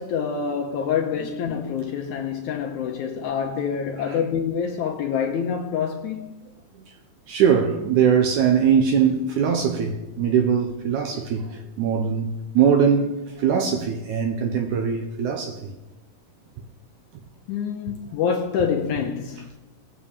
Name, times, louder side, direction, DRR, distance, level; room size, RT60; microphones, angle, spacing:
voice 1, 0.0-6.3 17.5-19.5, left 7 dB, 75° left, 1.9 m, -26 dB
voice 2, 7.3-15.7, right 7 dB, 75° right, 1.9 m, -21 dB
22.0 x 7.6 x 3.4 m
omnidirectional pair, 4.2 m